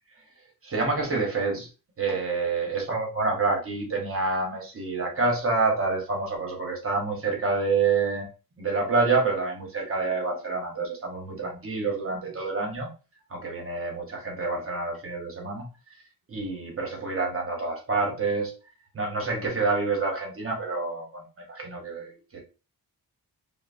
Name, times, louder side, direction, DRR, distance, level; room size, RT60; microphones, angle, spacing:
voice 1, 0.6-1.7 2.0-8.3 8.6-12.9 13.3-15.7 16.3-18.5 18.9-22.4, right 3 dB, 35° right, 0 dB, 0.8 m, -27 dB
3.1 x 2.0 x 2.4 m, 0.33 s
wide cardioid pair, 160°, 37 cm